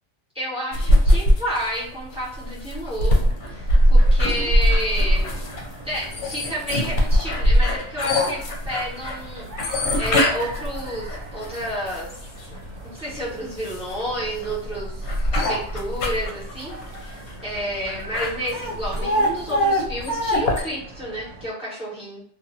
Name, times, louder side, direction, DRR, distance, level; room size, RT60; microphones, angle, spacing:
voice 1, 0.3-5.4 5.8-12.2 12.4-12.6 12.8-22.2, equal, 5° right, -8 dB, 1.0 m, -30 dB
sound 1, 0.7-12.4 13.0-20.6, equal, 70° left, 0.9 m, -21 dB
sound 2, 3.1-21.5, right 2 dB, 80° right, 0.9 m, -41 dB
2.5 x 2.4 x 2.7 m, 0.63 s
omnidirectional pair, 1.3 m